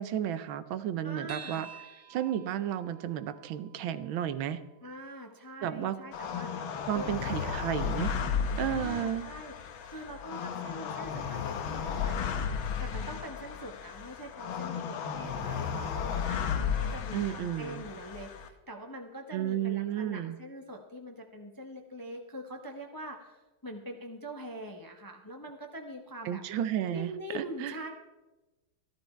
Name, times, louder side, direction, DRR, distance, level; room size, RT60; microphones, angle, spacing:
voice 1, 0.0-1.7 2.1-4.6 5.6-6.0 6.9-8.1 8.6-9.3 17.1-17.8 19.3-20.4 26.2-27.7, right 10 dB, 80° right, 12 dB, 1.5 m, -32 dB
voice 2, 1.0-1.7 4.8-6.5 6.9-7.5 8.7-9.5 9.9-12.3 12.8-26.4 26.9-27.9, right 1 dB, 20° left, 2 dB, 0.6 m, -44 dB
sound 1, 1.3-6.0, right 6 dB, 40° right, 0.7 m, -51 dB
sound 2, 6.1-18.5, left 7 dB, 85° left, 1.7 m, -34 dB
14.5 x 12.0 x 4.5 m, 1.1 s
omnidirectional pair, 2.2 m